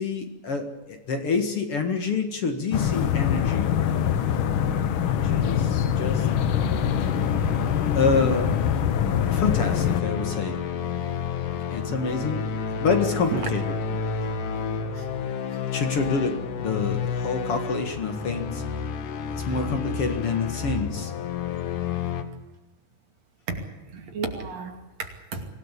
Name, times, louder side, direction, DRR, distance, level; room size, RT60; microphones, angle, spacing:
voice 1, 0.0-3.7 5.2-6.3 7.9-8.5 9.3-10.6 11.7-13.7 15.7-18.6 19.4-21.1, left 4 dB, 50° left, 6 dB, 2.6 m, -27 dB
sound 1, 2.7-10.0, left 9 dB, 65° left, 1.3 m, -24 dB
sound 2, 5.8-22.2, left 6 dB, 85° left, 3.3 m, -31 dB
voice 2, 23.5-25.5, right 4 dB, 55° right, 5 dB, 3.7 m, -33 dB
25.0 x 17.5 x 8.5 m, 1.1 s
omnidirectional pair, 3.6 m